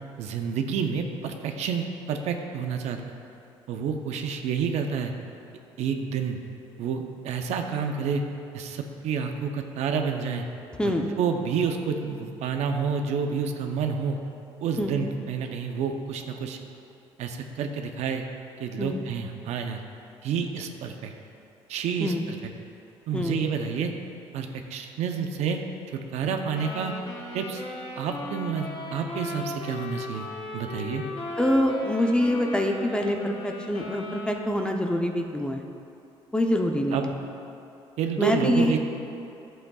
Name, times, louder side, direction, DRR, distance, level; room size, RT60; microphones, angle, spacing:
voice 1, 0.2-3.0 3.7-5.1 5.8-6.4 6.8-8.2 8.5-10.5 10.8-14.2 14.6-16.6 17.2-18.2 18.6-19.8 20.2-21.1 21.7-22.4 23.1-23.9 24.3-25.6 26.1-26.9 27.3-27.6 28.0-30.3 30.5-31.0 36.9-37.1 38.0-38.8, right 6 dB, 75° right, 4 dB, 0.7 m, -29 dB
sound 1, 26.5-34.9, left 2 dB, 55° left, 1.2 m, -37 dB
voice 2, 31.4-35.6 36.3-37.1 38.2-38.8, left 1 dB, 10° left, 3 dB, 0.7 m, -25 dB
11.0 x 7.8 x 2.3 m, 2.8 s
cardioid pair, 90°, 11 cm